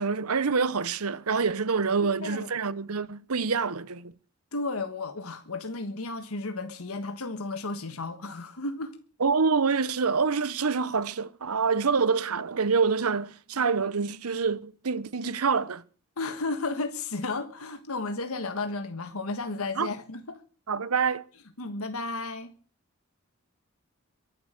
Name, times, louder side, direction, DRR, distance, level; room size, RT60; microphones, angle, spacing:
voice 1, 0.0-4.1 9.2-15.8 19.8-19.9 20.7-21.2, right 5 dB, 90° right, 0.9 m, -26 dB
voice 2, 2.0-2.5 4.5-9.0 16.2-20.4 21.6-22.5, left 3 dB, 80° left, 1.4 m, -33 dB
23.0 x 8.0 x 6.4 m
head